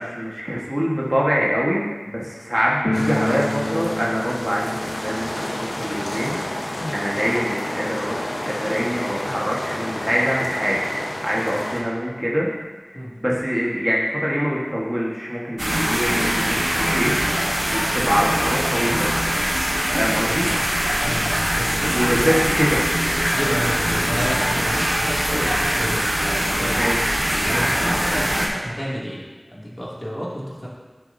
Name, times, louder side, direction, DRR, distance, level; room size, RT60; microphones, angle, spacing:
voice 1, 0.0-6.4 6.7-10.8 11.2-12.5 12.9-19.1 19.9-20.5 21.9-22.8 26.8-27.1, equal, 20° right, -5 dB, 1.4 m, -24 dB
sound 1, 2.8-9.6 9.8-9.9 10.2-10.3 11.0-11.1 11.4-12.6, left 1 dB, 60° left, 1.2 m, -31 dB
sound 2, 2.9-11.8, left 1 dB, 90° left, 1.0 m, -30 dB
sound 3, 15.6-28.5, equal, 45° right, 1.6 m, -22 dB
voice 2, 20.2-20.6 21.0-22.4 23.3-26.8 27.4-29.2 29.5-30.7, equal, 35° left, -7 dB, 2.5 m, -30 dB
11.5 x 6.4 x 2.7 m, 1.3 s
wide cardioid pair, 45°, 0 cm